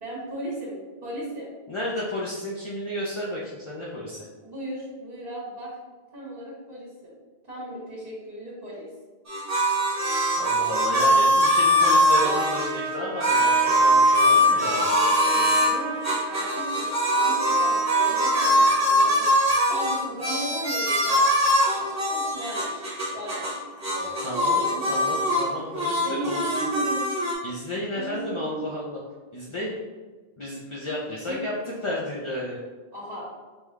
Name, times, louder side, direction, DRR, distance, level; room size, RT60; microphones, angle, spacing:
voice 1, 0.0-1.5 4.4-5.7 6.1-7.1 7.4-8.9 14.6-21.3 21.7-23.5 23.8-25.6 26.0-27.1 27.9-28.6 31.2-31.4 32.9-33.3, right 1 dB, 60° right, -11 dB, 1.5 m, -36 dB
voice 2, 1.7-4.3 10.4-14.8 24.2-26.7 27.4-29.0 29.3-29.7 30.4-32.6, left 1 dB, 40° left, -4 dB, 0.5 m, -32 dB
sound 1, 9.3-12.7 13.2-15.7 16.0-23.6 23.8-25.5 25.7-27.3, equal, 15° right, 1.0 m, -22 dB
Trumpet, 11.7-19.3, right 3 dB, 85° right, 0.9 m, -34 dB
5.4 x 2.3 x 3.1 m, 1.3 s
omnidirectional pair, 1.0 m